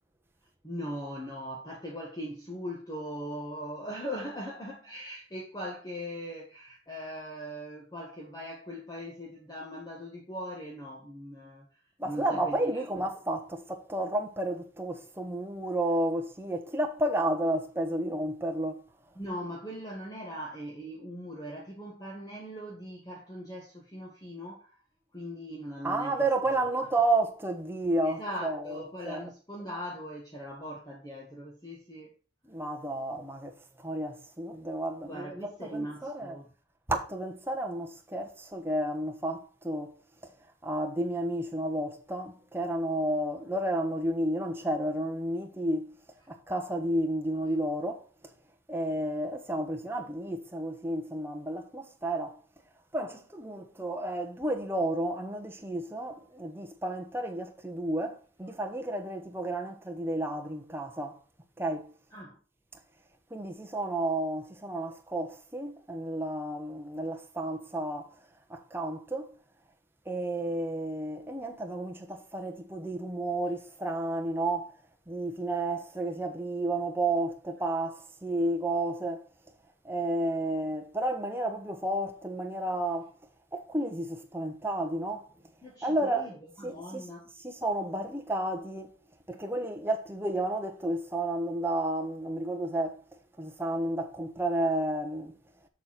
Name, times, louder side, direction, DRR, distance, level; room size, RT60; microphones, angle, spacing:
voice 1, 0.6-11.7 12.0-12.8 19.2-24.8 25.1-26.3 28.0-32.1 35.0-36.5 62.1-62.4 85.6-87.3, equal, 20° left, 1.7 m, -40 dB
voice 2, 12.0-18.8 25.8-29.2 32.5-36.4 36.9-39.9 40.2-40.3 40.6-46.0 46.3-48.0 48.7-52.4 52.9-61.2 61.6-61.9 63.3-68.1 68.5-69.3 70.1-74.7 75.1-79.3 79.8-83.1 83.5-85.2 85.8-86.3 86.6-87.0 87.4-88.9 89.3-93.0 93.4-95.3, right 1 dB, 10° right, 1.2 m, -31 dB
7.2 x 6.8 x 4.3 m
head